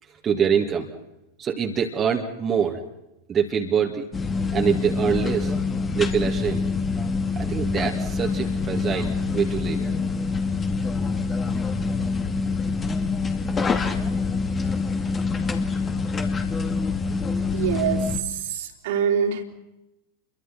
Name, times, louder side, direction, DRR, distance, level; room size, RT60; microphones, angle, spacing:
voice 1, 0.0-0.9 1.4-2.8 3.3-4.0 4.5-5.5 5.9-6.6 7.4-9.8, right 7 dB, 25° right, 2 dB, 2.4 m, -24 dB
sound 1, 4.1-18.2, left 4 dB, 20° left, 2.4 m, -25 dB
voice 2, 17.5-19.4, right 7 dB, 55° right, 3 dB, 3.6 m, -25 dB
29.5 x 23.5 x 5.9 m, 0.92 s
figure-of-eight pair, 90°, 0 cm